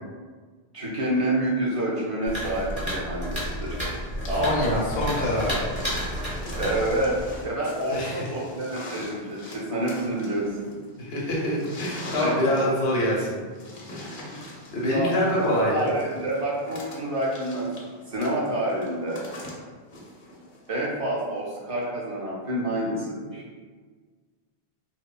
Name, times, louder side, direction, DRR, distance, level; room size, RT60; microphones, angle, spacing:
voice 1, 0.7-3.8 4.3-4.5 6.6-7.2 7.4-10.7 12.2-12.8 14.9-17.7 18.1-19.2 20.7-23.4, right 1 dB, 50° right, -5 dB, 0.4 m, -28 dB
sound 1, 2.3-7.4, equal, 10° right, 0.8 m, -31 dB
sound 2, 2.7-20.8 21.8-21.9, left 1 dB, 60° left, 0.7 m, -43 dB
voice 2, 4.3-5.7 7.9-8.3 11.0-13.4 13.9-15.9, left 1 dB, 90° left, -3 dB, 0.9 m, -26 dB
3.0 x 2.1 x 2.3 m, 1.5 s
omnidirectional pair, 1.0 m